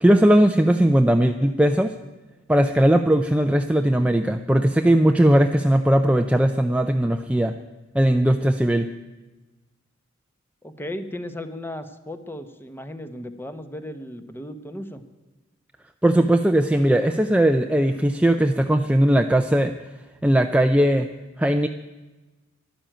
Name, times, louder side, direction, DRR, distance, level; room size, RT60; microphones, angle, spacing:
voice 1, 0.0-2.0 2.5-7.5 7.9-8.9 16.0-19.7 20.2-21.1 21.4-21.7, right 1 dB, 5° right, 6 dB, 0.4 m, -18 dB
voice 2, 10.6-15.0, left 1 dB, 10° left, 9 dB, 0.9 m, -35 dB
12.0 x 11.5 x 9.0 m, 1.2 s
head